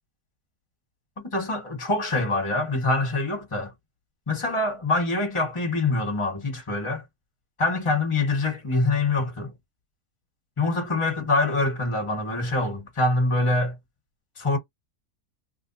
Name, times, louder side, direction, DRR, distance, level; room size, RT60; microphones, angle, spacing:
voice 1, 1.2-3.7 4.3-7.0 7.6-9.5 10.6-13.8 14.4-14.6, left 2 dB, 20° left, 1.3 m, -25 dB
2.9 x 2.1 x 4.1 m
omnidirectional pair, 1.6 m